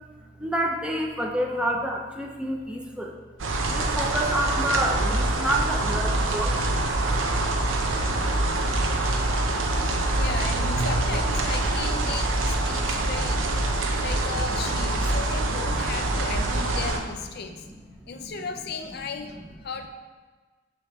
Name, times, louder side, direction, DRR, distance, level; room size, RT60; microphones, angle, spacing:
voice 1, 0.4-3.1 3.7-7.4 7.7-8.2 13.0-13.1 18.0-18.3, right 1 dB, 5° right, 0 dB, 0.6 m, -29 dB
sound 1, 3.4-17.0, right 2 dB, 90° right, 0.7 m, -25 dB
voice 2, 6.1-6.6 6.9-8.2 10.1-13.6 14.0-17.6 18.1-19.9, left 4 dB, 55° left, 6 dB, 0.5 m, -36 dB
6.9 x 3.1 x 5.9 m, 1.4 s
head